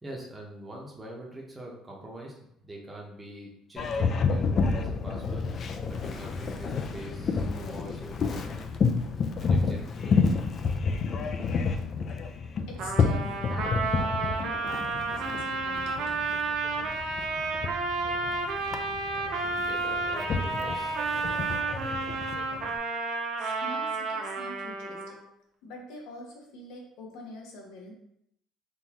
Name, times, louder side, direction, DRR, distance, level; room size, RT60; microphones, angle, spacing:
voice 1, 0.0-5.5 5.9-8.4 9.4-10.3 19.2-21.0, right 1 dB, 10° right, -2 dB, 0.8 m, -44 dB
Boat Water vehicle, 3.8-22.8, left 5 dB, 40° left, 0.3 m, -30 dB
voice 2, 12.7-16.2 23.4-25.2 25.6-27.9, left 1 dB, 85° left, 0 dB, 0.9 m, -45 dB
Trumpet, 12.8-25.2, right 3 dB, 55° right, 0.5 m, -31 dB
3.7 x 2.6 x 2.9 m, 0.73 s
cardioid pair, 140°, 0 cm